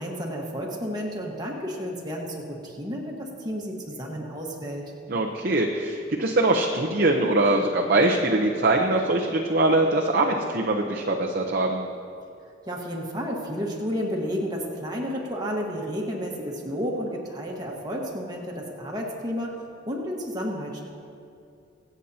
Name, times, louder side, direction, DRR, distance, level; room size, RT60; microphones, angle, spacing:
voice 1, 0.0-4.9 12.6-19.5 19.8-20.8, equal, 20° right, -2 dB, 1.5 m, -31 dB
voice 2, 5.1-11.8, right 2 dB, 45° right, 0 dB, 0.8 m, -22 dB
24.5 x 8.2 x 2.9 m, 2.6 s
head